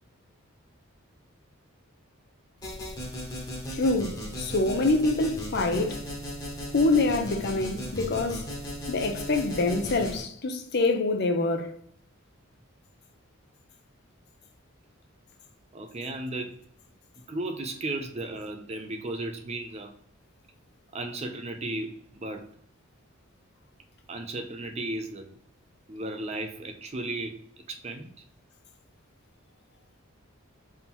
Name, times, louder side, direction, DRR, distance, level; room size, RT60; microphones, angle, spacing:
sound 1, 2.6-10.2, equal, 20° left, 1.1 m, -36 dB
voice 1, 3.7-6.0 6.7-8.5 8.9-11.7, left 2 dB, 50° left, 0.6 m, -25 dB
voice 2, 15.7-16.6 17.3-19.9 20.9-22.5 24.1-25.3 25.9-28.1, right 2 dB, 30° right, 0.4 m, -35 dB
3.6 x 2.8 x 4.2 m
head